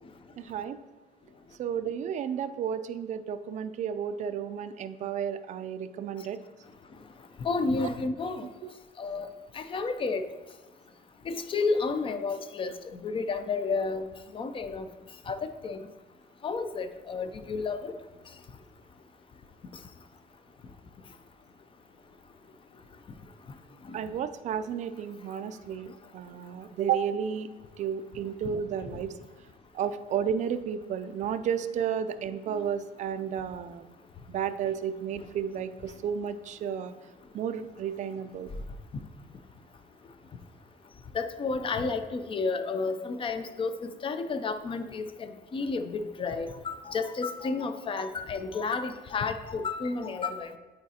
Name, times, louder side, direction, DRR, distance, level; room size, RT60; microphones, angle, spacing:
voice 1, 0.4-0.8 1.6-6.4 8.6-8.7 23.9-27.5 27.8-29.1 29.7-33.8 34.3-36.9 37.3-38.5, right 8 dB, 45° right, 10 dB, 0.4 m, -32 dB
voice 2, 7.4-8.5 9.0-9.3 9.6-10.2 11.3-12.7 13.0-14.1 14.3-14.9 15.3-15.4 15.6-15.8 16.4-17.9 41.1-43.7 44.0-50.6, left 4 dB, 30° left, 9 dB, 0.5 m, -31 dB
8.7 x 4.0 x 2.8 m, 1.3 s
cardioid pair, 110°, 17 cm